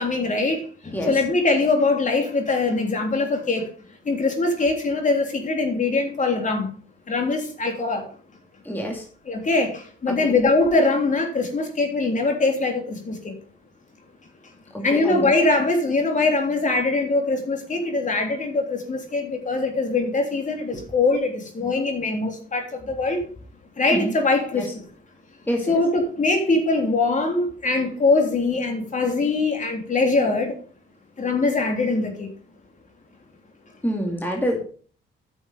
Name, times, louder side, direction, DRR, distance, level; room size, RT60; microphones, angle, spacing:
voice 1, 0.0-3.6 4.0-6.7 7.1-8.1 9.3-13.3 14.8-23.2 23.8-24.7 25.7-30.5 31.2-32.3, left 3 dB, 40° left, 3 dB, 3.3 m, -22 dB
voice 2, 8.7-9.0 10.1-10.3 14.7-15.3 20.7-20.8 23.9-24.1 24.5-24.6 25.5-25.8 33.8-34.6, equal, 10° left, 1 dB, 2.2 m, -26 dB
10.0 x 7.0 x 5.1 m, 0.42 s
cardioid pair, 90°, 20 cm